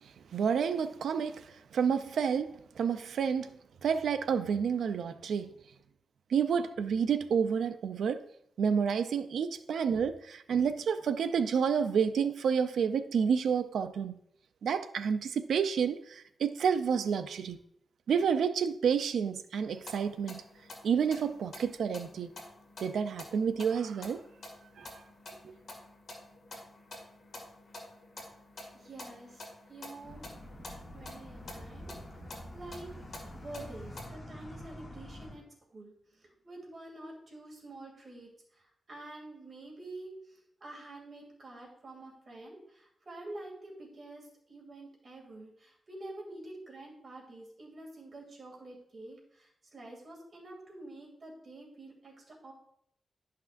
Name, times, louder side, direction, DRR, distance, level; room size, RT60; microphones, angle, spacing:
voice 1, 0.3-1.4 1.7-3.5 3.8-5.6 6.3-8.2 8.6-14.2 14.6-17.6 18.1-20.4 20.8-22.3 22.8-24.2 24.8-24.9 25.4-25.5, right 7 dB, 85° right, 0.4 m, -29 dB
sound 1, 19.7-34.0, left 2 dB, 55° left, 2.0 m, -49 dB
voice 2, 28.7-30.4 30.9-31.9 32.5-32.9 33.4-52.5, right 2 dB, 45° right, 2.6 m, -48 dB
sound 2, 30.0-35.3, equal, 30° left, 2.1 m, -47 dB
11.0 x 5.9 x 2.5 m
cardioid pair, 100°, 0 cm